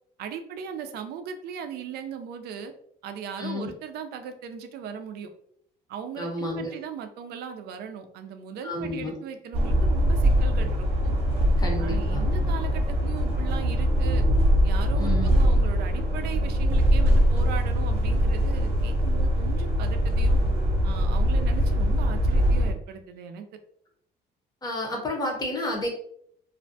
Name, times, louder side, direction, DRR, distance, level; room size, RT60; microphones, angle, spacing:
voice 1, 0.2-2.7 3.0-5.3 5.9-11.2 11.8-14.2 14.6-20.4 20.8-23.4, right 7 dB, 70° right, 7 dB, 0.4 m, -38 dB
voice 2, 3.4-3.7 6.2-6.7 8.6-9.1 11.6-12.2 15.0-15.3 24.6-25.9, left 2 dB, 25° left, 0 dB, 0.7 m, -30 dB
sound 1, 9.5-22.7, equal, 40° right, 0.8 m, -22 dB
2.4 x 2.1 x 2.6 m, 0.68 s
cardioid pair, 110°, 17 cm